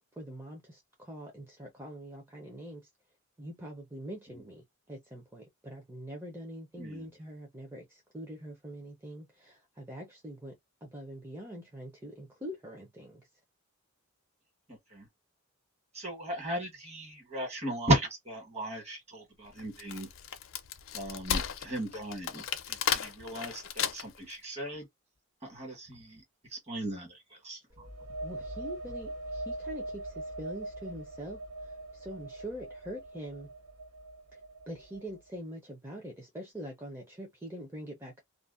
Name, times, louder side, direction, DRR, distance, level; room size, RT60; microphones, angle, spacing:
voice 1, 0.0-2.9 3.4-13.2 28.2-33.5 34.3-34.4 34.7-38.2, equal, 10° right, 0.5 m, -44 dB
voice 2, 14.7-15.1 15.9-20.1 20.9-24.9 25.4-26.2 26.5-27.9, right 1 dB, 35° right, 1.4 m, -36 dB
Wood, 19.6-24.3, left 8 dB, 65° left, 0.5 m, -34 dB
sound 1, 27.7-35.3, right 2 dB, 90° right, 1.1 m, -42 dB
2.5 x 2.1 x 2.4 m
head